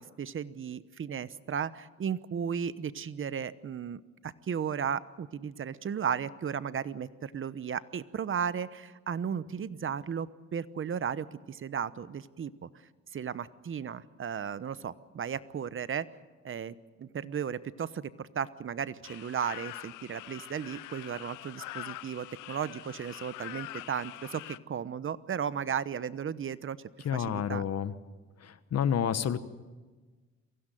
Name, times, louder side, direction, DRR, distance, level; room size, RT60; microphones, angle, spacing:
voice 1, 0.0-12.7 13.1-16.1 16.4-26.8 27.1-27.6, right 7 dB, 45° right, 15 dB, 1.0 m, -35 dB
sound 1, 19.0-24.6, left 16 dB, 85° left, 0.7 m, -44 dB
voice 2, 27.0-27.9 28.4-29.4, left 8 dB, 55° left, 12 dB, 1.4 m, -29 dB
23.0 x 16.0 x 9.2 m, 1.3 s
cardioid pair, 90°, 30 cm